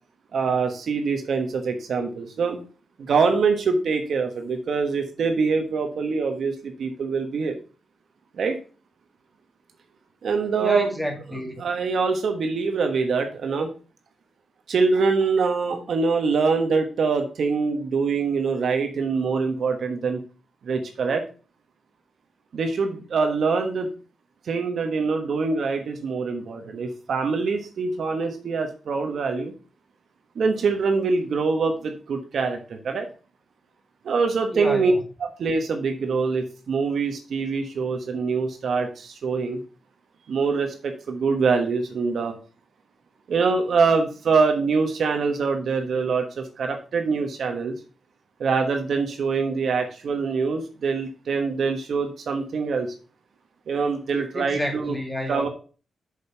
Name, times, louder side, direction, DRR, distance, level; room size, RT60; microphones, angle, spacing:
voice 1, 0.3-2.6 3.0-7.6 8.4-8.6 10.2-10.9 11.6-13.7 14.7-20.2 20.6-21.2 22.5-23.9 24.5-29.5 30.3-32.6 32.8-33.1 34.0-34.9 35.4-39.6 40.3-42.3 43.3-47.8 48.4-52.9 53.7-54.9 55.3-55.5, right 4 dB, 70° right, 1.2 m, -24 dB
voice 2, 10.6-11.6 34.5-35.0 54.3-55.5, left 1 dB, 5° left, 1.7 m, -30 dB
6.5 x 5.2 x 5.8 m
cardioid pair, 90°, 0 cm